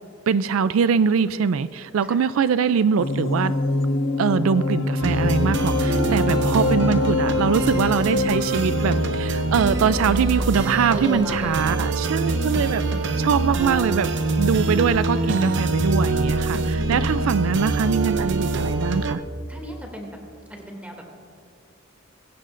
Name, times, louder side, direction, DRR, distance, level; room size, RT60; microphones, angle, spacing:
voice 1, 0.3-3.5 4.2-12.8 13.2-14.1 14.4-19.2, right 6 dB, 85° right, 14 dB, 0.4 m, -22 dB
sound 1, 3.0-9.5, left 3 dB, 70° left, 1.3 m, -25 dB
sound 2, 5.0-19.2, right 2 dB, 60° right, 0.8 m, -24 dB
voice 2, 10.9-11.6 12.3-12.8 16.7-17.3 19.5-20.2 20.5-21.1, equal, 5° right, 0 dB, 2.4 m, -36 dB
21.0 x 16.5 x 2.5 m, 2.2 s
head